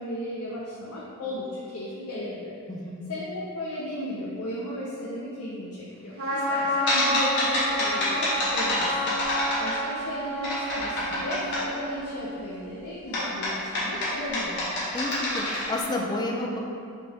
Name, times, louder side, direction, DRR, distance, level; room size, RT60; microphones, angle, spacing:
voice 1, 0.0-2.6 3.1-9.1 9.6-14.7, left 1 dB, 75° left, -6 dB, 0.6 m, -35 dB
voice 2, 2.7-3.1 14.9-16.6, left 2 dB, 20° left, 0 dB, 0.3 m, -30 dB
Trumpet, 6.2-12.4, equal, 65° right, 0.9 m, -31 dB
sound 1, 6.9-10.1 10.4-11.6 13.1-15.8, left 1 dB, 50° left, 1.1 m, -27 dB
4.1 x 2.9 x 3.4 m, 2.5 s
head